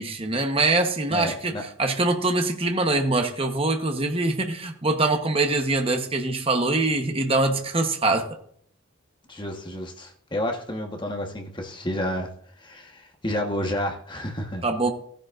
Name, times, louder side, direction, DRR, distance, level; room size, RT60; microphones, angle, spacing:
voice 1, 0.0-1.5 1.8-8.3 14.6-14.9, right 2 dB, 25° right, 5 dB, 1.1 m, -23 dB
voice 2, 1.1-1.6 9.3-12.3 12.6-14.6, left 1 dB, 25° left, 3 dB, 1.3 m, -30 dB
15.5 x 10.5 x 2.6 m, 0.62 s
head